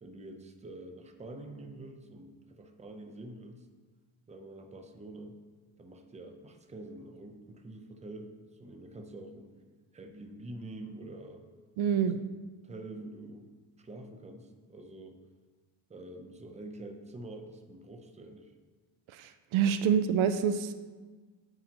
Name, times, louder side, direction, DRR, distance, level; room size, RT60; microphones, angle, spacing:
voice 1, 0.0-3.7 4.3-5.4 5.8-9.5 9.9-11.4 11.9-12.2 12.6-13.5 13.8-15.2 15.9-18.5, right 2 dB, 15° right, 4 dB, 0.6 m, -46 dB
voice 2, 11.8-12.1 19.1-20.7, right 8 dB, 70° right, 10 dB, 0.6 m, -27 dB
8.8 x 8.8 x 2.9 m, 1.4 s
cardioid pair, 150°, 50 cm